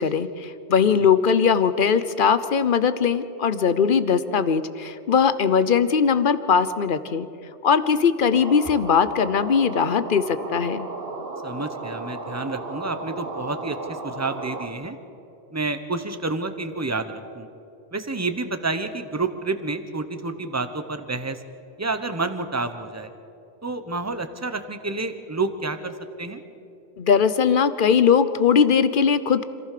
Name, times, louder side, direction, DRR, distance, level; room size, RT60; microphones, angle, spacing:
voice 1, 0.0-7.3 7.6-10.9 27.0-29.4, left 6 dB, 55° left, 13 dB, 1.0 m, -20 dB
sound 1, 8.3-14.7, right 2 dB, 65° right, 1.9 m, -34 dB
voice 2, 11.4-15.0 15.5-17.5 17.9-21.4 21.8-23.1 23.6-26.4, right 3 dB, 15° right, 9 dB, 1.0 m, -29 dB
27.0 x 15.0 x 6.7 m, 2.8 s
omnidirectional pair, 1.1 m